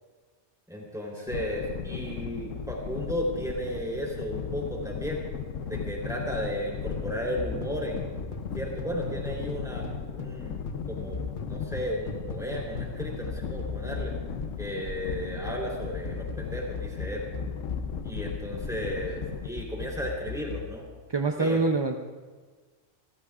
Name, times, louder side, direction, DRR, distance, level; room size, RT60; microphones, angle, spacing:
voice 1, 0.7-5.2 5.7-8.1 8.5-9.9 10.1-11.2 11.5-14.1 14.6-17.2 18.0-20.8 21.4-21.6, equal, ahead, -3 dB, 3.6 m, -34 dB
sound 1, 1.3-19.5, left 6 dB, 80° left, 1.1 m, -36 dB
sound 2, 5.7-6.7 6.9-10.4 10.7-20.7, left 3 dB, 45° left, 1.1 m, -38 dB
voice 2, 21.1-22.0, right 3 dB, 35° right, 3 dB, 0.4 m, -25 dB
29.0 x 14.0 x 2.5 m, 1.4 s
omnidirectional pair, 1.3 m